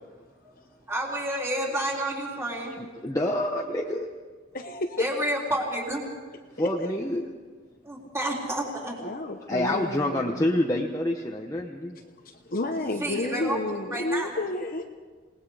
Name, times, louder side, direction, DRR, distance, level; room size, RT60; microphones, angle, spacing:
voice 1, 0.9-2.8 5.0-6.1 7.8-9.0 13.0-14.4, right 1 dB, 15° right, -2 dB, 3.7 m, -30 dB
voice 2, 2.8-4.1 6.6-7.2 9.5-12.0, left 1 dB, 15° left, -1 dB, 1.0 m, -27 dB
voice 3, 4.5-5.1 6.8-6.9 9.0-10.5 12.5-14.8, left 2 dB, 45° left, 3 dB, 1.0 m, -30 dB
28.0 x 19.0 x 5.0 m, 1.5 s
head